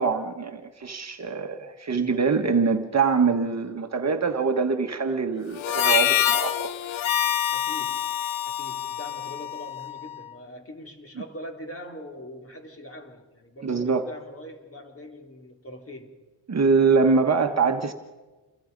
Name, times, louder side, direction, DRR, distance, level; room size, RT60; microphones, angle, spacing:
voice 1, 0.0-7.1 13.6-14.1 16.5-17.9, right 5 dB, 35° right, 5 dB, 1.4 m, -24 dB
Harmonica, 5.6-10.2, left 11 dB, 90° left, 0.9 m, -26 dB
voice 2, 7.5-8.2 8.5-16.2, left 1 dB, 30° left, 3 dB, 3.1 m, -42 dB
28.5 x 21.0 x 5.3 m, 1.2 s
cardioid pair, 105°, 46 cm